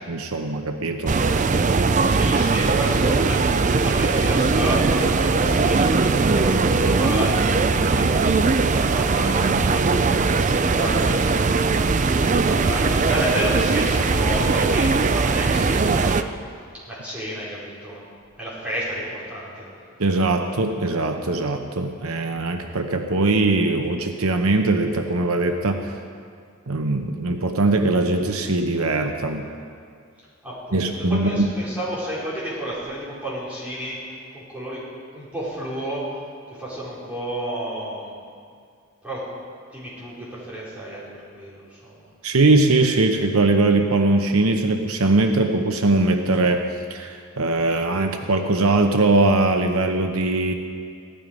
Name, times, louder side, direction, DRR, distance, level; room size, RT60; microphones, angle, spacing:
voice 1, 0.1-1.2 20.0-25.9 26.7-29.4 30.7-31.5 42.2-50.5, right 2 dB, 80° right, 5 dB, 0.9 m, -21 dB
sound 1, 1.1-16.2, right 4 dB, 35° right, 0.4 m, -20 dB
voice 2, 2.1-11.8 12.1-16.2 16.8-18.1 18.4-19.7 30.4-34.0 34.3-34.8 35.1-36.1 36.6-38.1 39.0-39.2 39.7-41.1 41.3-42.1, right 1 dB, 5° right, -9 dB, 4.8 m, -31 dB
16.0 x 12.5 x 5.3 m, 2.2 s
head